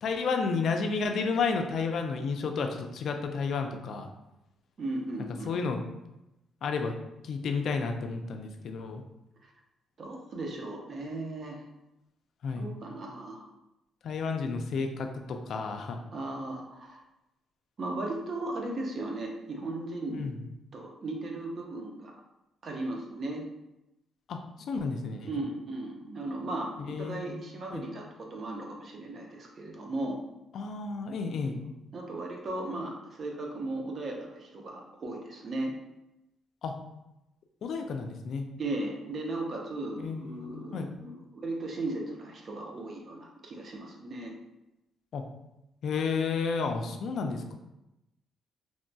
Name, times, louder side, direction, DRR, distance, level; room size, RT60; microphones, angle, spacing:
voice 1, 0.0-4.1 5.5-5.8 6.6-7.0 7.2-9.0 12.4-12.7 14.0-16.0 20.1-20.3 24.3-24.4 24.7-25.3 26.8-27.3 27.7-27.8 30.5-31.6 36.6-36.7 37.6-38.5 40.0-40.9 45.1-45.2 45.8-47.5, left 4 dB, 65° left, 5 dB, 0.3 m, -31 dB
voice 2, 4.8-5.5 9.4-9.5 10.0-11.6 12.6-13.4 16.1-17.0 17.8-20.3 20.7-22.1 22.6-23.4 25.2-30.2 31.4-35.7 38.6-44.3, right 2 dB, 45° right, 0 dB, 0.6 m, -36 dB
3.0 x 2.6 x 2.2 m, 0.92 s
cardioid pair, 90°, 0 cm